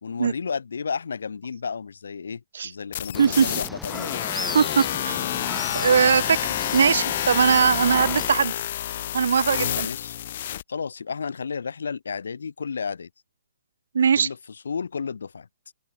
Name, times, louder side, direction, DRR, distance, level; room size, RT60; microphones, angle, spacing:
voice 1, 0.0-4.2 9.8-10.2 10.7-13.1 14.1-15.5, left 5 dB, 80° left, 3.1 m, -32 dB
sound 1, 2.9-10.6, left 11 dB, 45° left, 1.0 m, -28 dB
sound 2, 3.1-8.3, equal, ahead, 2.3 m, -37 dB
voice 2, 3.2-3.5 4.5-5.2 5.7-6.4 6.7-8.5 9.1-9.9 13.9-14.3, right 6 dB, 70° right, 1.8 m, -20 dB
open air
hypercardioid pair, 155°, 0 cm